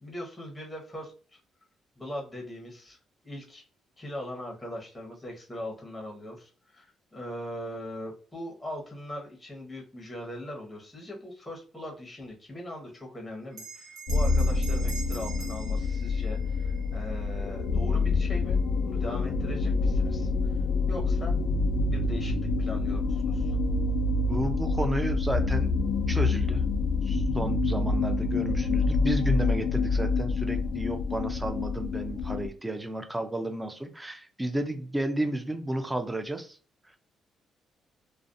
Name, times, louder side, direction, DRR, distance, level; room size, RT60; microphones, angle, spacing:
voice 1, 0.0-1.4 2.0-3.0 3.2-3.6 4.0-18.6 18.8-20.6 20.9-21.4 21.8-23.6, left 1 dB, 10° left, 0 dB, 0.8 m, -40 dB
Bell, 13.5-18.4, right 5 dB, 65° right, 1.1 m, -45 dB
sound 1, 14.1-32.5, left 3 dB, 70° left, 0.3 m, -27 dB
voice 2, 24.3-25.8 26.1-26.6 27.0-36.6, right 1 dB, 10° right, 6 dB, 0.4 m, -32 dB
2.4 x 2.0 x 2.5 m, 0.40 s
cardioid pair, 90°, 0 cm